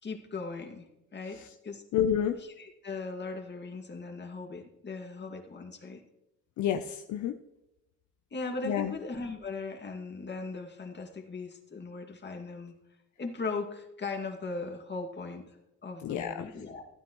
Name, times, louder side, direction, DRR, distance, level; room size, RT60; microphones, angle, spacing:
voice 1, 0.0-1.8 2.4-6.0 8.3-12.8 13.2-15.6 15.8-16.8, left 3 dB, 35° left, 2 dB, 2.2 m, -38 dB
voice 2, 1.9-2.4 6.6-7.3 8.6-8.9 16.0-16.5, left 9 dB, 70° left, 7 dB, 0.7 m, -29 dB
15.0 x 9.5 x 3.1 m, 0.90 s
cardioid pair, 90°, 30 cm